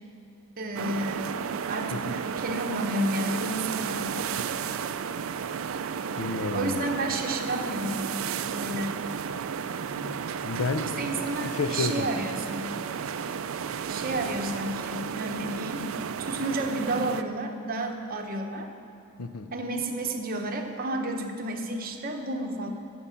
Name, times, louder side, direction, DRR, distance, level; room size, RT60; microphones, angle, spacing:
voice 1, 0.6-4.5 6.2-9.0 10.8-12.7 13.8-15.9 16.2-18.7 19.5-22.7, right 1 dB, 40° right, 3 dB, 0.9 m, -31 dB
sound 1, 0.8-17.2, right 7 dB, 65° right, 0.4 m, -33 dB
voice 2, 6.2-6.9 8.5-8.6 10.0-12.1 19.2-19.5, left 3 dB, 85° left, 9 dB, 0.6 m, -32 dB
13.5 x 5.4 x 7.0 m, 2.8 s
head